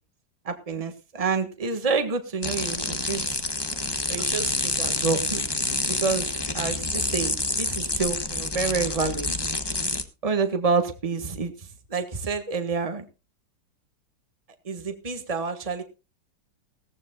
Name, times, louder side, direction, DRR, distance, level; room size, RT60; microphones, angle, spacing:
voice 1, 0.4-3.4 4.1-5.4 5.7-9.3 10.2-13.0 14.6-15.8, right 4 dB, 20° right, 8 dB, 1.5 m, -28 dB
sound 1, 2.4-10.0, left 2 dB, 15° left, 1.1 m, -28 dB
18.0 x 14.5 x 2.3 m, 0.29 s
omnidirectional pair, 1.9 m